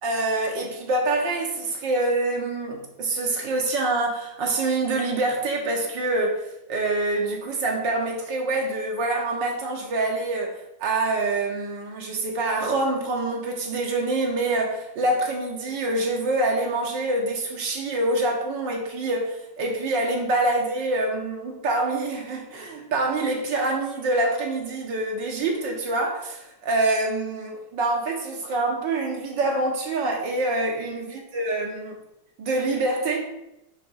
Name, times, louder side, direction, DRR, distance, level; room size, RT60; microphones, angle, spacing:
voice 1, 0.0-31.9 32.4-33.3, right 2 dB, 80° right, 0 dB, 2.1 m, -26 dB
9.5 x 3.2 x 4.8 m, 0.85 s
omnidirectional pair, 2.0 m